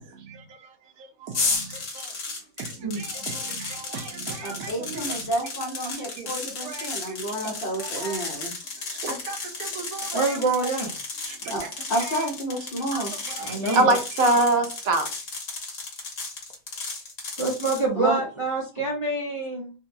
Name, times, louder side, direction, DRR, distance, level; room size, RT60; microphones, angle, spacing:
voice 1, 0.1-2.1 2.6-5.3 6.1-6.3 6.6-7.2 7.4-8.2 8.9-10.8 11.2-11.7 11.9-12.3 12.9-15.1, right 2 dB, 75° right, 1.2 m, -29 dB
sound 1, 1.3-17.8, left 3 dB, 65° left, 1.4 m, -34 dB
voice 2, 2.8-3.3 10.1-10.9 13.4-13.9 17.4-19.7, right 3 dB, 30° right, 0.6 m, -26 dB
voice 3, 4.4-8.5 11.5-13.1 13.8-14.0 17.9-18.2, right 1 dB, 45° left, 0.9 m, -30 dB
3.9 x 2.2 x 2.6 m
omnidirectional pair, 1.5 m